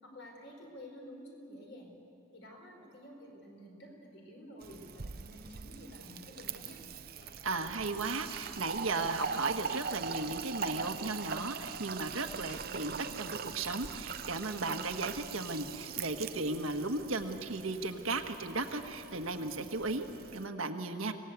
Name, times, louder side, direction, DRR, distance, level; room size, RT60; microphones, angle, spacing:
voice 1, 0.0-1.9 2.3-6.8, equal, 60° left, 1 dB, 4.6 m, -50 dB
Fill (with liquid), 4.6-20.5, right 6 dB, 45° right, 0.6 m, -41 dB
sound 1, 5.8-17.8, left 1 dB, 35° left, 1.5 m, -58 dB
voice 2, 7.4-20.1 20.3-21.1, right 3 dB, 85° right, 5 dB, 1.5 m, -36 dB
25.5 x 18.0 x 8.2 m, 2.8 s
head